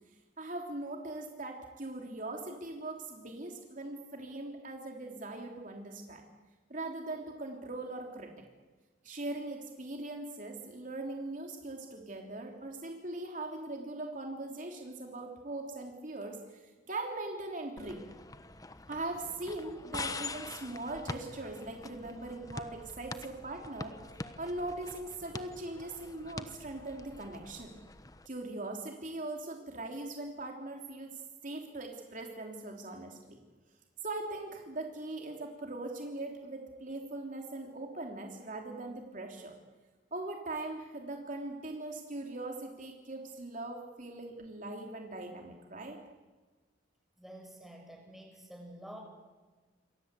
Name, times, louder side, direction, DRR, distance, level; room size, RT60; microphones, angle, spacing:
voice 1, 0.4-6.3 6.7-8.3 9.0-18.0 18.9-24.0 24.4-27.8 28.2-31.1 31.4-33.4 34.0-39.5 40.1-46.0, right 2 dB, 45° right, 2 dB, 3.2 m, -40 dB
sound 1, 17.8-28.3, left 3 dB, 20° left, 1.1 m, -45 dB
voice 2, 47.2-49.0, right 1 dB, ahead, 1 dB, 6.2 m, -49 dB
28.5 x 24.0 x 8.3 m, 1.3 s
head